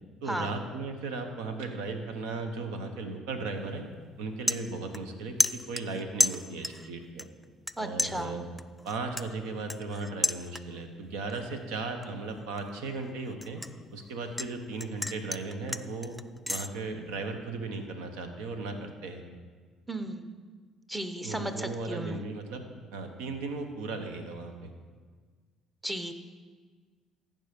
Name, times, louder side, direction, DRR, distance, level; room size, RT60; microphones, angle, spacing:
voice 1, 0.2-3.9 4.2-7.3 7.8-8.4 8.8-13.6 13.9-16.2 16.5-19.2 21.2-22.6 22.9-24.7, right 3 dB, 90° right, 6 dB, 1.1 m, -36 dB
sound 1, 3.5-3.8 4.1-5.1 5.4-6.9 7.2-7.7 8.0-10.9 11.3-11.6 12.0-14.5 14.8-16.7, left 2 dB, 5° left, 0.3 m, -32 dB
voice 2, 7.8-8.4 19.9-20.3 20.9-22.2 25.8-26.1, right 1 dB, 10° right, 8 dB, 0.9 m, -34 dB
15.0 x 5.4 x 5.2 m, 1.5 s
supercardioid pair, 85°, 0 cm